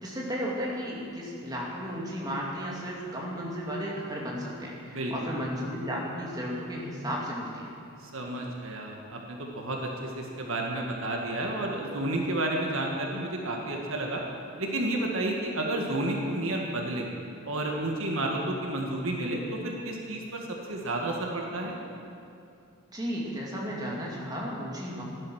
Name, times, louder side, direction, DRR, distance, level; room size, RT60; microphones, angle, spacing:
voice 1, 0.0-7.7 22.9-25.0, equal, 15° right, -4 dB, 2.4 m, -34 dB
voice 2, 4.8-5.3 8.0-14.2 14.6-17.1 17.4-21.8, right 1 dB, 65° right, 0 dB, 1.7 m, -31 dB
15.0 x 11.5 x 6.3 m, 2.7 s
head